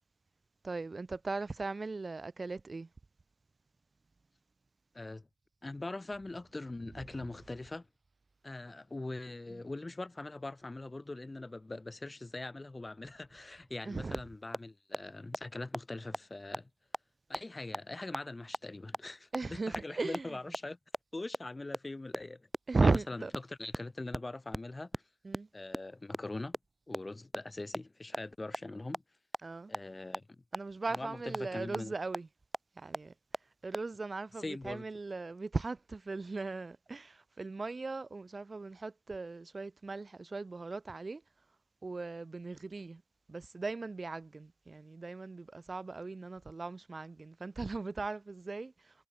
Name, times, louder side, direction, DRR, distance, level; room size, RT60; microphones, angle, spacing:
voice 1, 0.6-2.9 9.5-9.6 13.8-14.2 19.3-20.3 22.7-23.3 25.2-25.5 29.4-29.7 30.5-32.3 32.8-33.1 33.6-41.2 41.8-43.0 43.3-48.7, right 3 dB, 25° right, 1.5 m, -37 dB
voice 2, 4.9-5.3 5.6-7.9 8.4-16.7 17.3-20.8 21.1-22.5 22.8-25.0 25.5-26.6 26.9-29.0 29.7-30.4 30.9-31.9 34.4-34.8, left 2 dB, 15° left, 1.2 m, -42 dB
sound 1, 14.1-14.2 14.5-14.6 14.9-15.0 15.3-15.4 15.7-15.8 16.1-16.2 16.5-16.6 16.9-17.0 17.3-17.4 17.7-17.8 18.1-18.2 18.5-18.6 18.9-19.0 19.3-19.4 19.7-19.8 20.1-20.2 20.5-20.6 20.9-21.0 21.3-21.4 21.7-21.8 22.1-22.2 22.5-22.6 22.9-23.0 23.3-23.4 23.7-23.8 24.1-24.2 24.5-24.6 24.9-25.0 25.3-25.4 25.7-25.8 26.1-26.2 26.5-26.6 26.9-27.0 27.3-27.4 27.7-27.8 28.1-28.2 28.5-28.6 28.9-29.0 29.3-29.4 29.7-29.8 30.1-30.2 30.5-30.6 30.9-31.0 31.3-31.4 31.7-31.8 32.1-32.2 32.5-32.6 32.9-33.0 33.3-33.4 33.7-33.8, right 1 dB, 5° right, 2.2 m, -33 dB
cardioid pair, 90°, 0 cm